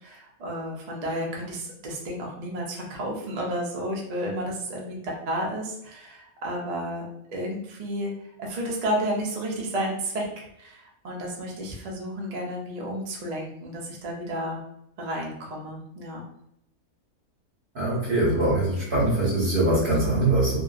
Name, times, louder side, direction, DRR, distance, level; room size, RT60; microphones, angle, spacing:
voice 1, 0.0-7.0 7.3-8.1 8.4-14.6 15.0-16.2, equal, 75° right, -2 dB, 0.3 m, -32 dB
voice 2, 17.7-20.6, right 2 dB, 40° right, -8 dB, 1.1 m, -22 dB
2.7 x 2.5 x 2.4 m, 0.78 s
omnidirectional pair, 1.6 m